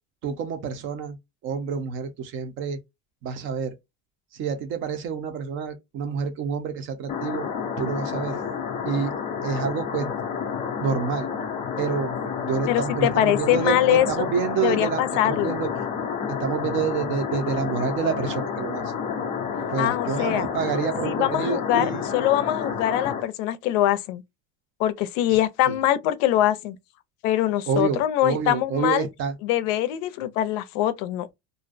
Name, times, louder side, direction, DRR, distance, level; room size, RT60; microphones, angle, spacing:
voice 1, 0.2-1.2 1.4-2.8 3.2-3.7 4.3-7.5 7.8-8.4 8.8-9.1 9.4-10.1 10.8-11.3 11.8-15.7 16.4-18.9 19.7-22.1 25.3-25.4 25.7-25.8 27.7-29.4, right 6 dB, 35° right, 0.5 m, -28 dB
sound 1, 7.1-23.2, left 6 dB, 20° left, 0.3 m, -30 dB
voice 2, 12.7-14.3 14.6-15.5 19.8-20.5 21.0-21.9 22.1-24.2 24.8-26.8 27.2-29.1 29.4-31.3, left 12 dB, 75° left, 0.5 m, -23 dB
2.5 x 2.1 x 2.4 m
cardioid pair, 170°, 37 cm